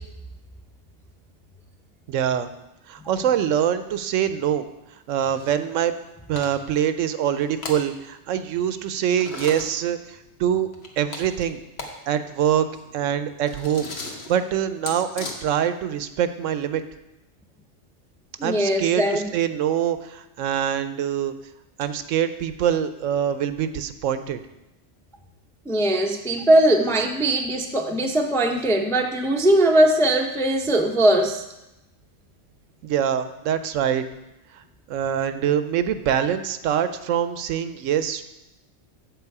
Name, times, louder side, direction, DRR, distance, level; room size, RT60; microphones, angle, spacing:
voice 1, 2.1-2.5 2.9-4.7 5.1-5.9 6.3-10.7 11.0-11.6 12.1-12.7 12.9-13.9 14.3-16.8 18.4-21.3 21.8-24.4 32.8-34.0 34.9-38.2, right 9 dB, 85° right, 11 dB, 1.0 m, -24 dB
sound 1, 5.1-5.6 6.0-6.1 6.4-6.8 7.3-7.8 9.1-9.7 10.7-11.9 12.2-12.3 12.6-15.3, left 2 dB, 55° left, 1.3 m, -37 dB
voice 2, 18.4-19.3 25.7-31.4, right 1 dB, 5° left, 3 dB, 0.3 m, -20 dB
8.1 x 7.4 x 4.7 m, 0.92 s
omnidirectional pair, 1.3 m